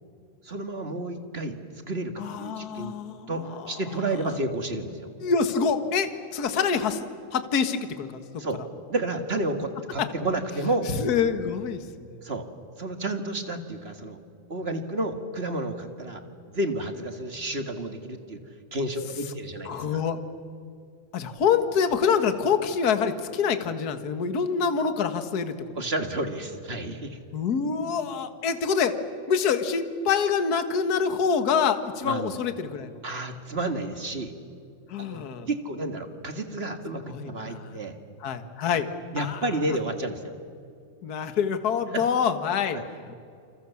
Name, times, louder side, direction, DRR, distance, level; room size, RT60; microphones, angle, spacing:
voice 1, 0.4-1.6 1.9-2.9 3.3-5.1 8.4-8.6 8.9-10.9 12.2-12.5 12.8-14.2 14.5-16.2 16.5-18.4 18.7-20.0 25.7-27.2 32.0-32.4 33.0-34.3 35.0-38.0 38.7-38.8 39.1-40.3 41.9-42.1 42.7-42.9, right 2 dB, 25° right, 7 dB, 1.4 m, -31 dB
voice 2, 2.2-3.7 5.2-8.4 10.0-10.1 10.9-11.8 19.6-20.2 21.1-25.5 27.3-29.0 29.3-33.0 34.9-35.5 37.1-37.8 38.2-38.9 39.2-39.4 41.0-42.8, left 6 dB, 40° left, 9 dB, 1.5 m, -26 dB
29.0 x 28.5 x 7.2 m, 2.5 s
omnidirectional pair, 3.6 m